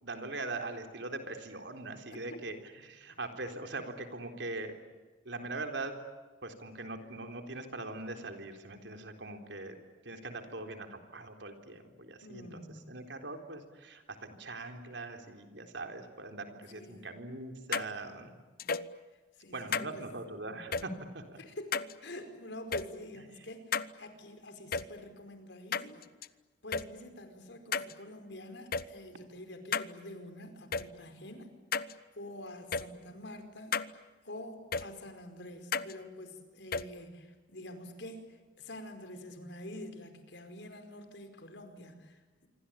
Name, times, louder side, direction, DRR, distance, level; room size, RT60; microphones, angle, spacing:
voice 1, 0.0-2.6 2.8-4.8 5.3-6.0 6.4-9.8 10.0-12.6 12.9-18.3 19.5-21.4, right 2 dB, 70° right, 6 dB, 3.9 m, -41 dB
voice 2, 12.2-12.9 16.7-17.1 19.3-20.1 21.4-26.0 26.6-31.5 31.9-33.8 34.2-42.5, left 1 dB, 65° left, 7 dB, 4.9 m, -47 dB
sound 1, 17.7-17.9 18.6-18.9 19.7-19.9 20.7-20.8 21.7-21.9 22.7-22.8 23.7-23.9 24.7-24.8 25.7-26.3 26.7-26.8 27.7-27.9 28.7-28.8 29.7-29.9 30.7-30.8 31.7-31.9 32.7-32.8 33.7-33.9 34.7-34.8 35.7-35.9 36.7-36.8, left 5 dB, 50° left, 0.9 m, -32 dB
26.5 x 25.0 x 8.8 m, 1.3 s
head